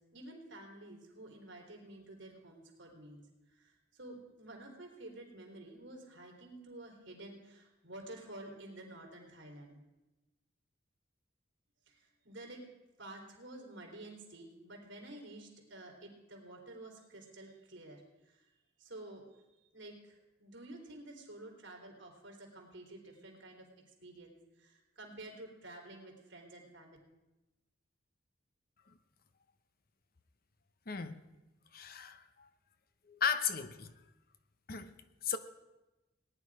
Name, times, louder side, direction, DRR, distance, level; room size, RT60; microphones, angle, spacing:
voice 1, 0.1-9.8 11.9-12.6 13.0-18.5 18.8-19.4 19.7-23.7 24.0-27.0, right 1 dB, 75° right, 3.5 m, -51 dB
voice 2, 30.9-31.2 31.7-32.5 33.1-33.9 34.7-35.4, left 6 dB, 50° left, 0.8 m, -36 dB
18.5 x 10.0 x 4.8 m
head